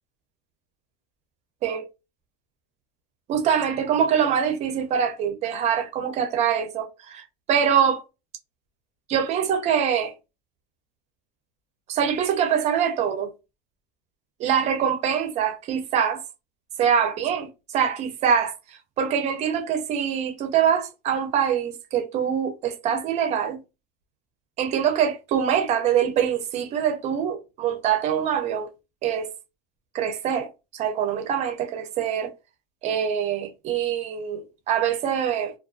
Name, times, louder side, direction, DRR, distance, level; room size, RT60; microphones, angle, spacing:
voice 1, 3.3-8.0 9.1-10.1 11.9-13.3 14.4-16.2 16.8-17.5 17.7-23.6 24.6-28.7 29.0-29.3 29.9-32.3 32.8-35.5, right 8 dB, 25° right, 0.4 m, -24 dB
2.5 x 2.3 x 2.3 m
supercardioid pair, 155°, 30 cm